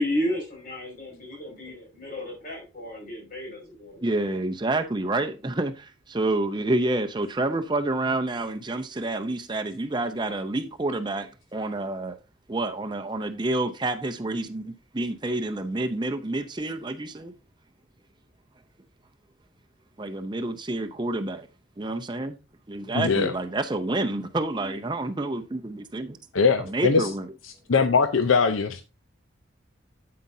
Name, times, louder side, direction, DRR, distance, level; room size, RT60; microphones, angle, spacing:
voice 1, 0.0-4.2, left 1 dB, 45° left, 5.4 m, -32 dB
voice 2, 4.0-12.2 12.5-17.3 20.0-21.5 21.8-22.4 22.7-26.2 26.7-27.2, right 2 dB, 20° right, 0.6 m, -28 dB
voice 3, 22.9-23.3 26.3-27.1 27.4-28.8, left 5 dB, 90° left, 0.7 m, -22 dB
9.4 x 8.5 x 2.7 m
head